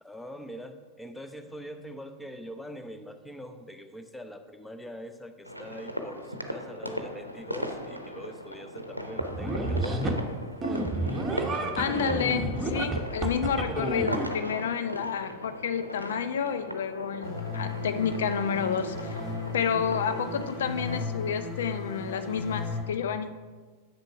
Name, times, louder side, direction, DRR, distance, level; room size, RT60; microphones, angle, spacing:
voice 1, 0.0-10.3, equal, 5° left, 6 dB, 0.7 m, -43 dB
sound 1, 5.4-21.0, equal, 90° right, 0.7 m, -38 dB
sound 2, 9.2-10.2 10.6-14.3, right 1 dB, 15° right, 1.1 m, -30 dB
voice 2, 11.8-19.2 19.5-23.3, left 7 dB, 60° left, 10 dB, 0.5 m, -30 dB
sound 3, 17.2-22.8, left 3 dB, 30° left, 1.8 m, -35 dB
8.2 x 6.6 x 4.7 m, 1.4 s
figure-of-eight pair, 90°, 0 cm